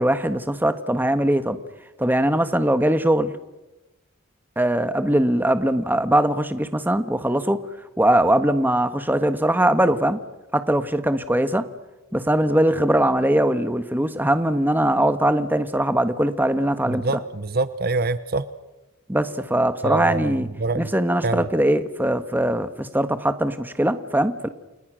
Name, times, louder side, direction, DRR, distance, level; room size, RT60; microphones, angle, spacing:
voice 1, 0.0-1.6 2.0-3.3 4.6-7.6 8.0-10.2 10.5-11.6 12.1-17.0 19.1-20.5 20.7-24.5, right 1 dB, 10° right, 10 dB, 1.4 m, -21 dB
voice 2, 16.9-18.4 19.8-20.9 21.2-21.5, right 3 dB, 45° right, 14 dB, 0.9 m, -25 dB
30.0 x 27.5 x 6.4 m, 1.1 s
head